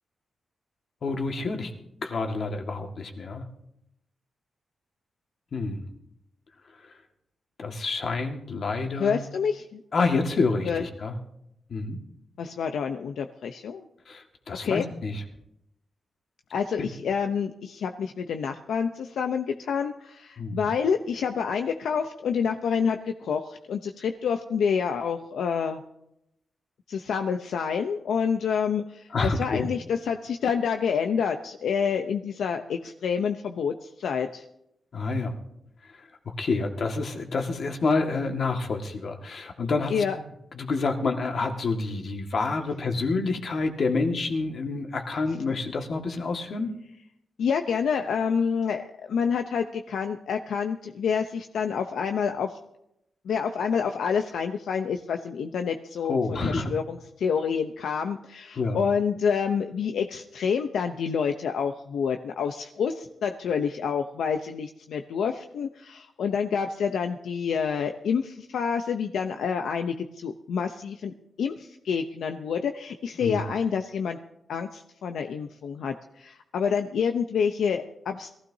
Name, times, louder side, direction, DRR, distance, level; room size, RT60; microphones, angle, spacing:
voice 1, 1.0-1.7 2.0-3.4 5.5-5.8 6.7-6.9 7.6-9.2 9.9-11.2 11.7-12.0 14.1-15.2 16.8-16.9 20.4-20.6 29.1-29.7 34.9-35.4 35.9-36.0 36.4-40.0 40.5-46.8 56.1-56.7 58.6-58.8 73.2-73.4, left 3 dB, 55° left, 3 dB, 1.8 m, -28 dB
voice 2, 8.9-9.8 10.6-10.8 12.4-13.9 14.6-14.8 16.5-25.8 26.9-34.4 39.9-40.2 47.4-52.6 53.2-74.2 74.5-78.3, left 6 dB, 85° left, 6 dB, 0.7 m, -28 dB
22.0 x 15.5 x 2.8 m, 0.81 s
cardioid pair, 105°, 0 cm